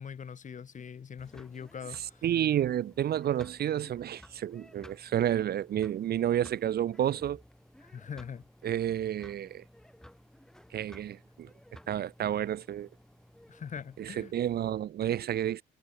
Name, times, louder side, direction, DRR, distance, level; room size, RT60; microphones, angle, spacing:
voice 1, 0.0-2.2 7.8-8.5 13.5-14.3 15.0-15.2, left 7 dB, 40° left, 1.0 m, -42 dB
sound 1, 1.2-14.7, equal, 5° left, 1.7 m, -55 dB
voice 2, 2.2-7.4 8.6-9.6 10.7-11.5 11.9-12.9 14.0-15.6, right 11 dB, 55° right, 0.5 m, -30 dB
cardioid pair, 90°, 20 cm